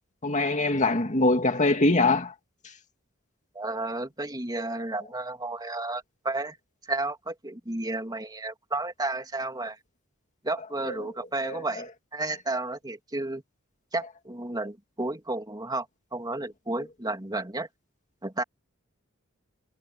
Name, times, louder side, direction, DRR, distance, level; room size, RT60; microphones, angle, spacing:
voice 1, 0.2-2.3 10.8-11.1 11.4-11.8, left 2 dB, 35° left, 2.2 m, -24 dB
voice 2, 3.5-6.6 6.9-9.8 10.4-13.4 13.9-15.9 16.1-17.7 18.2-18.4, right 2 dB, 20° right, 3.2 m, -32 dB
head